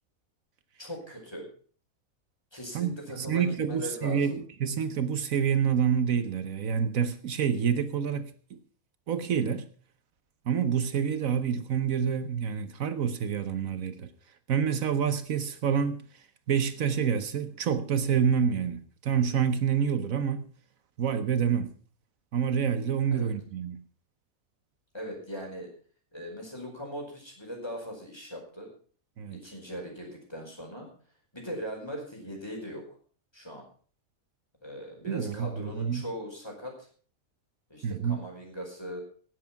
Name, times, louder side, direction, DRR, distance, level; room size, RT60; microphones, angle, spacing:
voice 1, 0.8-1.5 2.5-4.4 23.1-23.3 24.9-25.7 26.1-28.7 29.3-30.9 31.3-32.8 33.3-33.7 34.6-36.9 37.7-39.0, equal, 20° left, 4.9 m, -40 dB
voice 2, 2.7-8.6 9.1-9.7 10.5-14.1 14.5-16.0 16.5-20.5 21.0-21.7 22.3-23.8 29.2-29.4 35.0-36.0 37.8-38.2, right 7 dB, 75° right, 1.3 m, -27 dB
18.0 x 7.8 x 5.8 m
omnidirectional pair, 1.5 m